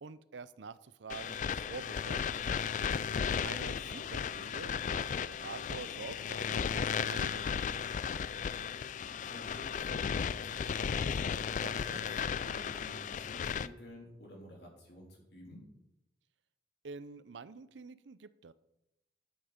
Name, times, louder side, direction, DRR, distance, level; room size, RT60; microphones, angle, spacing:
voice 1, 0.0-2.6 3.4-8.0 16.8-18.5, right 4 dB, 80° right, 15 dB, 0.6 m, -47 dB
sound 1, 1.1-13.7, left 7 dB, 45° left, 0.3 m, -35 dB
voice 2, 3.2-3.6 9.1-15.7, equal, 60° left, -1 dB, 3.6 m, -51 dB
10.0 x 8.9 x 5.1 m, 0.89 s
head